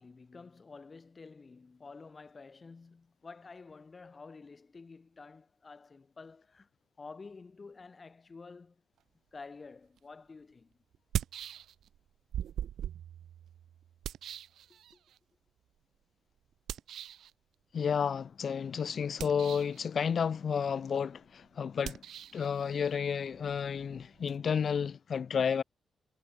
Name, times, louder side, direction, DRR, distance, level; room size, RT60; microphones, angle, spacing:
voice 1, 0.0-6.7 7.0-8.8 9.3-10.8 14.7-15.0, left 4 dB, 25° left, 5.8 m, -50 dB
sound 1, 10.0-10.1 10.9-12.0 12.3-15.2 16.7-17.3 19.1-19.8 21.8-24.4, right 10 dB, 85° right, 1.9 m, -40 dB
voice 2, 17.7-22.0 22.3-25.6, left 7 dB, 45° left, 2.2 m, -31 dB
wide cardioid pair, 160°, 0 cm